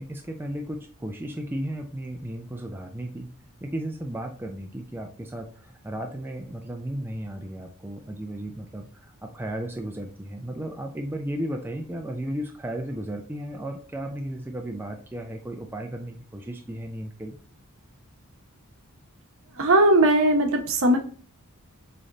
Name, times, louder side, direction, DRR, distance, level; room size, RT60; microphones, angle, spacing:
voice 1, 0.0-17.4, right 1 dB, 10° right, 2 dB, 0.4 m, -34 dB
voice 2, 19.5-21.0, right 1 dB, 60° right, 5 dB, 0.9 m, -19 dB
3.8 x 3.3 x 3.8 m, 0.42 s
head